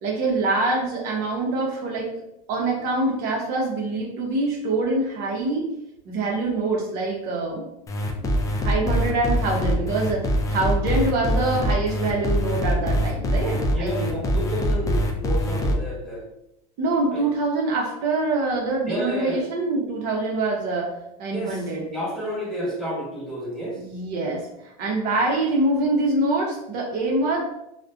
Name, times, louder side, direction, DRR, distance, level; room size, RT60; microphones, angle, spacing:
voice 1, 0.0-2.1 2.5-5.6 6.1-7.6 8.2-8.3 8.6-14.1 16.8-20.9 21.2-21.9 23.8-24.5 24.8-27.4, right 2 dB, 60° right, -2 dB, 0.7 m, -25 dB
sound 1, 7.9-15.7, equal, 20° left, 0.3 m, -23 dB
voice 2, 13.7-16.2 17.1-17.2 18.9-19.4 21.3-23.8, equal, 5° left, -7 dB, 1.0 m, -30 dB
2.4 x 2.1 x 2.4 m, 0.82 s
supercardioid pair, 105°, 18 cm